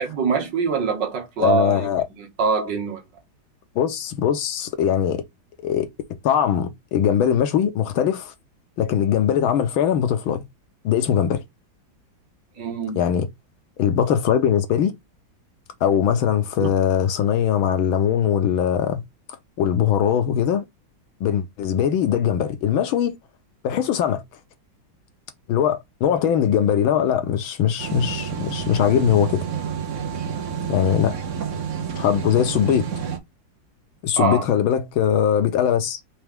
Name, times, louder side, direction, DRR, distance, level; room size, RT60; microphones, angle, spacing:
voice 1, 0.0-3.0 12.6-13.0 34.2-34.4, right 5 dB, 65° right, 1.8 m, -24 dB
voice 2, 1.4-2.0 3.7-5.2 5.6-5.9 6.2-8.3 8.8-10.4 10.8-11.4 12.9-13.3 13.8-14.9 15.8-19.0 19.6-20.6 21.2-23.2 23.6-24.2 25.5-29.4 30.7-31.2 32.0-32.9 34.0-36.0, left 9 dB, 90° left, 1.7 m, -21 dB
sound 1, 27.8-33.2, right 7 dB, 45° right, 1.1 m, -29 dB
4.7 x 3.1 x 3.5 m
omnidirectional pair, 2.2 m